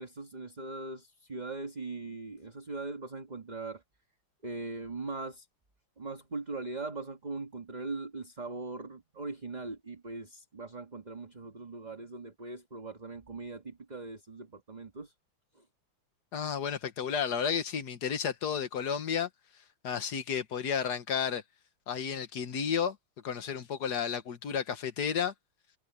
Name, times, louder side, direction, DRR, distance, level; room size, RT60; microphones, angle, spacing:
voice 1, 0.0-3.8 4.4-5.5 6.0-15.1 15.6-15.7, right 3 dB, 20° right, 1.9 m, -40 dB
voice 2, 16.3-19.3 19.8-21.4 21.9-23.0 23.2-25.3, left 7 dB, 50° left, 1.7 m, -32 dB
omnidirectional pair, 2.3 m